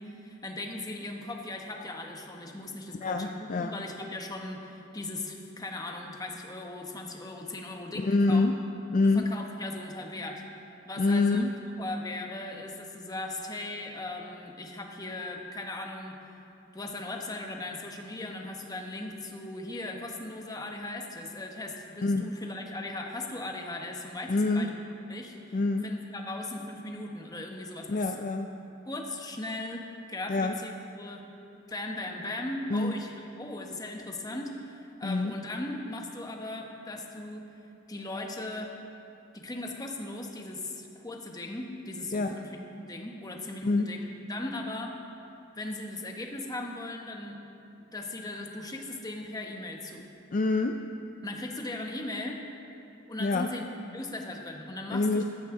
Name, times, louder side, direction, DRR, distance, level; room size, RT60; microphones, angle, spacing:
voice 1, 0.0-8.4 9.0-10.4 10.8-11.5 11.8-16.2 16.7-24.7 25.1-28.1 28.9-30.7 31.0-31.2 31.7-37.5 37.9-38.7 39.3-44.9 45.5-47.4 47.9-50.1 51.2-52.4 53.1-53.6 53.9-55.2, left 2 dB, 20° left, 2 dB, 1.1 m, -38 dB
voice 2, 3.0-3.8 8.0-8.5 8.9-9.3 11.0-11.5 22.0-22.3 24.3-24.7 25.5-25.9 27.9-28.5 30.3-30.6 32.7-32.9 35.0-35.3 42.1-42.3 43.6-43.9 50.3-50.8 53.2-53.5 54.9-55.2, left 3 dB, 40° left, 5 dB, 0.4 m, -26 dB
14.5 x 13.5 x 3.8 m, 2.8 s
head